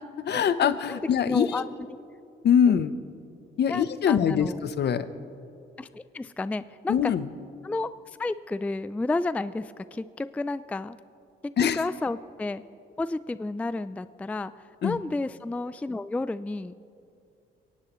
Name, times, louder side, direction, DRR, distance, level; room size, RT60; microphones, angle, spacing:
voice 1, 0.0-1.6 2.4-3.0 3.6-5.1 6.9-7.3 11.6-11.8 14.8-15.0, left 8 dB, 60° left, 13 dB, 0.8 m, -23 dB
voice 2, 1.2-1.6 2.7-2.8 3.7-4.6 5.8-7.1 7.6-7.9 8.2-11.0 11.7-12.6 13.0-14.5 14.8-16.7, left 2 dB, 5° left, 14 dB, 0.3 m, -31 dB
23.0 x 18.0 x 3.1 m, 2.5 s
cardioid pair, 90°, 20 cm